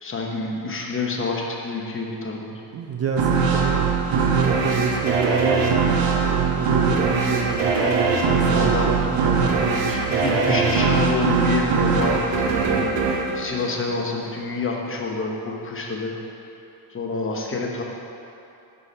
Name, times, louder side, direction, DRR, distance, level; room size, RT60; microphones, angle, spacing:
voice 1, 0.0-2.6 8.4-9.1 9.9-16.1 16.9-17.8, left 3 dB, 30° left, 0 dB, 1.0 m, -28 dB
voice 2, 2.7-5.8 6.3-10.8, right 6 dB, 35° right, 2 dB, 0.4 m, -27 dB
sound 1, 3.2-14.4, right 5 dB, 85° right, 0.9 m, -22 dB
6.2 x 5.3 x 4.3 m, 2.8 s
cardioid pair, 90°, 43 cm